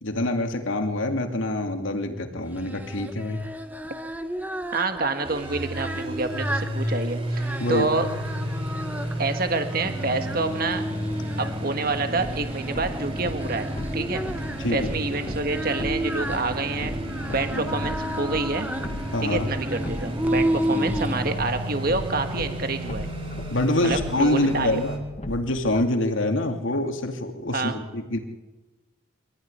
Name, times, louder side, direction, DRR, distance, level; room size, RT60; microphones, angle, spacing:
voice 1, 0.0-3.5 7.6-7.9 14.6-15.0 17.5-17.7 19.1-19.5 20.7-21.0 23.5-25.0 25.3-28.2, left 1 dB, 75° left, 5 dB, 2.7 m, -26 dB
Singing, 2.5-21.3, right 1 dB, 10° right, 1.3 m, -33 dB
voice 2, 4.7-8.1 9.2-10.8 11.4-13.7 13.9-14.2 14.7-16.9 17.3-18.7 19.2-23.1 23.8-24.8 27.5-27.8, right 3 dB, 45° right, 7 dB, 1.6 m, -27 dB
sound 1, 5.2-25.0, equal, 30° right, 4.1 m, -32 dB
sound 2, 12.2-25.8, left 1 dB, 30° left, 1.3 m, -38 dB
25.0 x 14.5 x 9.9 m, 1.2 s
head